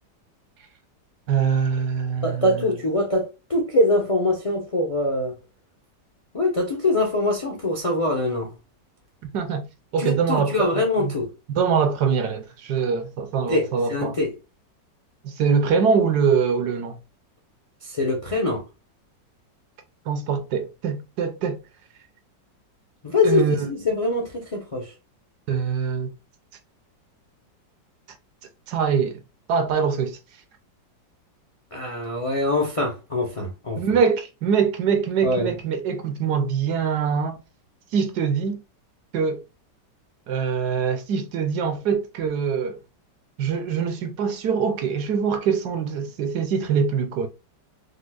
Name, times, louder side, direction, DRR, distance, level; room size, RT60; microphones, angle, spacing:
voice 1, 1.3-2.7 9.2-9.7 9.9-11.1 11.5-14.2 15.2-17.0 20.1-21.6 23.2-23.7 25.5-26.1 28.7-29.2 29.5-30.2 33.8-37.4 37.9-38.6 39.1-39.4 40.3-42.8 43.4-47.3, right 6 dB, 70° right, 1.1 m, -23 dB
voice 2, 2.2-5.4 6.3-8.5 10.0-11.3 13.5-14.3 17.8-18.6 23.0-24.9 31.7-33.8 35.2-35.5, left 2 dB, 60° left, 0.3 m, -23 dB
5.0 x 2.0 x 2.3 m
omnidirectional pair, 1.9 m